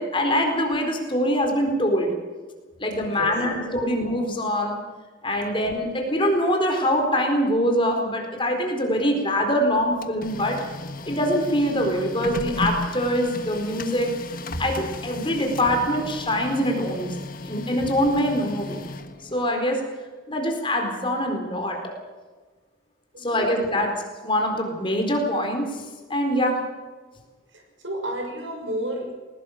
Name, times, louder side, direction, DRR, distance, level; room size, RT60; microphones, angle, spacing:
voice 1, 0.0-2.1 2.8-4.8 5.2-10.6 11.1-14.1 14.6-17.1 17.4-18.8 19.3-19.8 20.3-21.9 23.2-24.0 24.2-25.8 26.1-26.6, equal, 25° left, 3 dB, 4.3 m, -24 dB
voice 2, 3.0-3.8 14.5-14.7 17.8-17.9 23.1-23.8 27.5-29.1, right 1 dB, 65° right, 3 dB, 6.5 m, -33 dB
Printer, 9.7-19.5, left 2 dB, 45° left, 1.5 m, -35 dB
21.0 x 20.0 x 6.6 m, 1.3 s
head